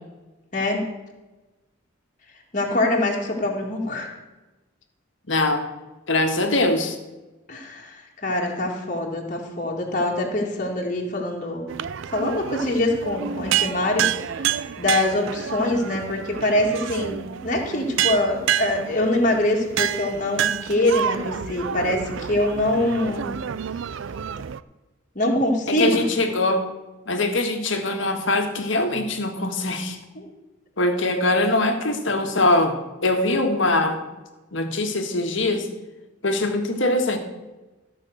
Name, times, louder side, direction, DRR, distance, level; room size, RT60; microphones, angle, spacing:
voice 1, 0.5-0.8 2.5-4.1 7.5-11.7 12.1-14.1 14.4-23.2 25.2-26.0 30.2-30.3, left 1 dB, 40° left, -1 dB, 2.1 m, -24 dB
voice 2, 5.3-5.7 6.1-7.0 25.7-26.7 27.1-30.0 30.8-34.0 34.5-35.7 36.2-37.2, left 2 dB, 65° left, 5 dB, 1.6 m, -22 dB
sound 1, 11.7-24.6, right 9 dB, 70° right, 0.4 m, -28 dB
14.0 x 5.7 x 7.8 m, 1.1 s
head